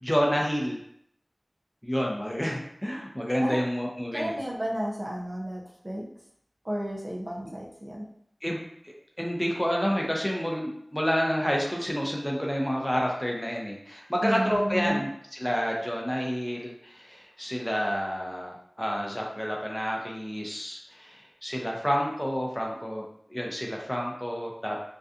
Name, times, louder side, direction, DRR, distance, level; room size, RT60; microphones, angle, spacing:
voice 1, 0.0-0.8 1.8-4.3 8.4-23.0 23.3-24.8, equal, 10° left, -1 dB, 0.6 m, -29 dB
voice 2, 4.1-6.1 6.6-8.1 14.2-15.0, equal, 40° right, -4 dB, 0.5 m, -32 dB
2.6 x 2.3 x 2.4 m, 0.71 s
wide cardioid pair, 45°, 0 cm